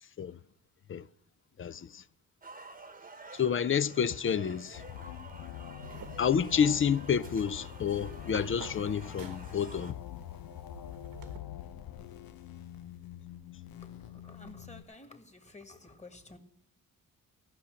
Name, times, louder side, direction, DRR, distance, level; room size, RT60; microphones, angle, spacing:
voice 1, 1.6-2.0 3.3-4.8 6.2-10.0, left 7 dB, 40° left, 0.5 m, -29 dB
sound 1, 2.4-9.9, right 3 dB, 25° right, 1.1 m, -51 dB
sound 2, 4.7-14.8, left 11 dB, 90° left, 0.8 m, -45 dB
sound 3, 5.8-11.4, right 6 dB, 80° right, 1.4 m, -50 dB
voice 2, 13.8-16.4, left 2 dB, 20° left, 1.8 m, -52 dB
15.0 x 5.8 x 8.9 m
cardioid pair, 95°, 34 cm